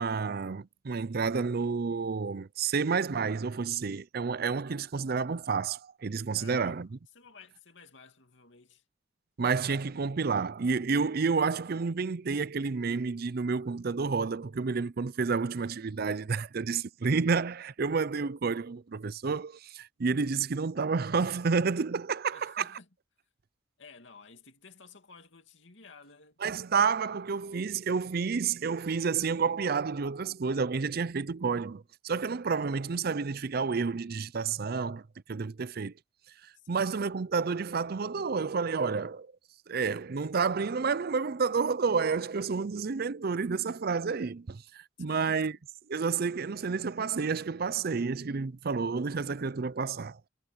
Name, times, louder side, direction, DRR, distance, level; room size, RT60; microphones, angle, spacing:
voice 1, 0.0-6.9 9.4-22.7 26.4-35.0 35.3-35.9 36.4-39.3 39.7-45.5 45.9-50.2, right 5 dB, 50° right, 0.5 m, -30 dB
voice 2, 6.3-6.9 7.1-8.8 22.3-22.9 23.8-26.4 36.5-37.0 45.0-45.6, left 4 dB, 65° left, 2.7 m, -53 dB
head